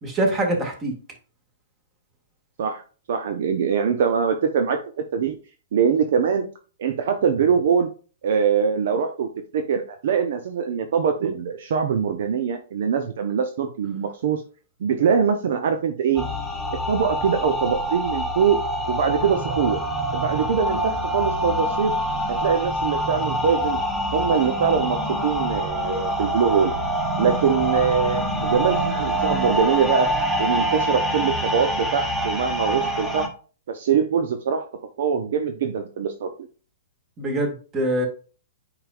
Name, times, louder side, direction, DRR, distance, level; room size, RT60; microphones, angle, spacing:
voice 1, 0.0-0.9 37.2-38.1, right 1 dB, 25° right, 3 dB, 2.1 m, -24 dB
voice 2, 3.1-4.8 5.1-5.4 5.7-6.5 6.8-7.9 8.2-9.3 9.5-14.4 14.8-16.2 16.9-18.6 18.9-19.8 20.1-21.9 22.4-23.8 24.1-26.7 27.2-30.1 30.4-33.3 33.7-34.7 35.0-36.3, right 6 dB, 55° right, 6 dB, 0.7 m, -23 dB
sound 1, 16.2-33.3, equal, 5° right, 1.4 m, -25 dB
8.8 x 5.0 x 2.5 m, 0.38 s
figure-of-eight pair, 115°, 0 cm